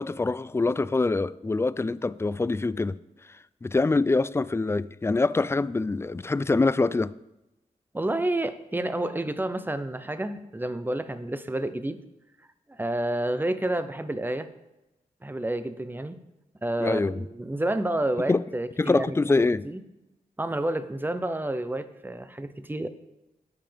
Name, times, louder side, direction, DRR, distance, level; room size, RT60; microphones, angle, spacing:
voice 1, 0.0-3.0 3.3-7.1 16.8-17.2 18.3-18.4 18.8-19.6, left 3 dB, 15° left, 0.3 m, -25 dB
voice 2, 7.9-12.0 12.7-14.5 15.2-16.2 16.6-19.8 20.4-22.9, right 1 dB, 15° right, 0.7 m, -29 dB
17.0 x 5.7 x 3.5 m
cardioid pair, 65°, 15 cm